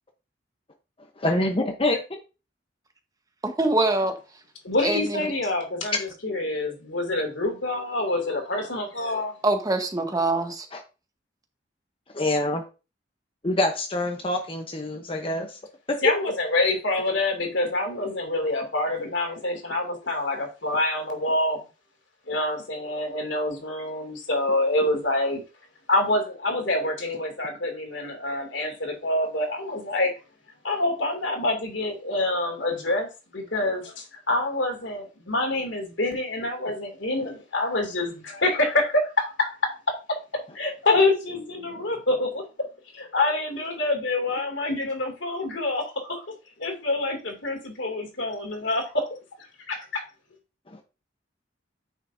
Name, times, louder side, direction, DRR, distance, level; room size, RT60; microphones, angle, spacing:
voice 1, 1.2-2.0 10.7-10.8 12.1-12.6 13.4-15.6 50.7-50.8, left 1 dB, 30° left, 4 dB, 0.9 m, -25 dB
voice 2, 3.4-4.1 4.8-5.2 9.4-10.7, right 2 dB, 20° right, 5 dB, 1.2 m, -24 dB
voice 3, 4.6-9.3 16.0-21.6 22.3-25.4 25.9-30.1 30.6-39.7 40.5-42.7 42.9-46.2 46.6-49.1 49.7-50.0, left 2 dB, 90° left, 3 dB, 2.6 m, -26 dB
9.6 x 6.2 x 2.7 m, 0.31 s
head